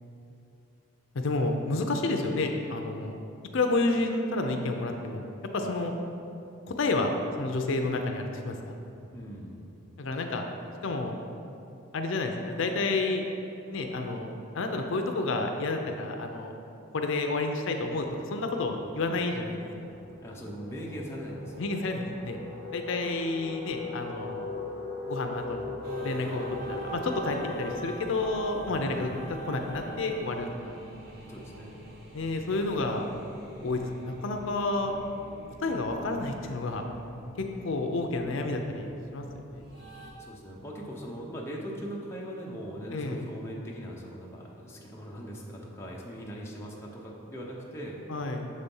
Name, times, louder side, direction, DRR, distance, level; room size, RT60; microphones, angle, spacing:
voice 1, 1.1-3.2 3.5-5.3 5.5-5.9 6.8-8.8 10.0-10.4 10.8-11.1 11.9-13.2 13.7-14.3 14.5-16.5 16.9-19.7 21.6-22.4 22.7-24.5 25.1-25.7 26.0-29.1 29.5-30.8 32.1-33.0 33.6-34.9 35.6-36.8 37.6-39.6 42.9-43.2 48.1-48.4, left 2 dB, 65° left, 4 dB, 0.5 m, -30 dB
voice 2, 9.1-9.7 20.2-21.6 28.6-29.1 31.2-31.7 40.2-48.0, equal, 10° left, -3 dB, 0.7 m, -40 dB
sound 1, 19.5-29.8, left 3 dB, 20° right, 1.0 m, -40 dB
sound 2, 25.8-40.1, right 2 dB, 50° right, 1.0 m, -45 dB
6.8 x 4.2 x 5.3 m, 2.8 s
head